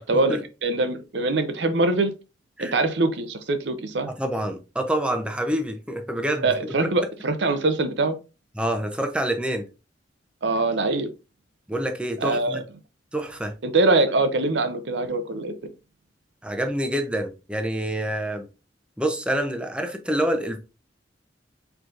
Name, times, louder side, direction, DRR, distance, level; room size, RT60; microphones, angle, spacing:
voice 1, 0.1-2.1 2.6-4.1 6.4-8.2 10.4-11.1 12.2-12.6 13.6-15.5, right 2 dB, 70° right, 0.7 m, -23 dB
voice 2, 4.2-6.9 8.6-9.7 11.7-12.6 13.1-13.5 16.4-18.5 19.0-20.6, right 1 dB, 5° right, 0.6 m, -27 dB
4.7 x 3.9 x 2.5 m
head